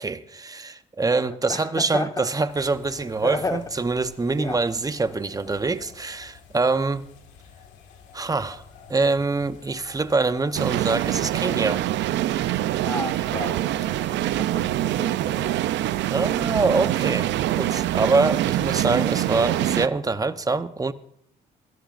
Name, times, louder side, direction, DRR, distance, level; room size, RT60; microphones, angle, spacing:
voice 1, 0.0-7.1 8.1-8.6 8.9-11.8 16.1-20.9, right 3 dB, 20° right, 0.9 m, -25 dB
voice 2, 1.5-2.3 3.2-3.6 4.4-4.6 12.8-13.8 14.1-15.6, left 3 dB, 20° left, 1.3 m, -32 dB
sound 1, 2.5-18.9, left 6 dB, 85° left, 1.9 m, -49 dB
sound 2, 10.5-19.9, right 14 dB, 75° right, 0.6 m, -24 dB
22.5 x 14.0 x 2.6 m
cardioid pair, 80°, 19 cm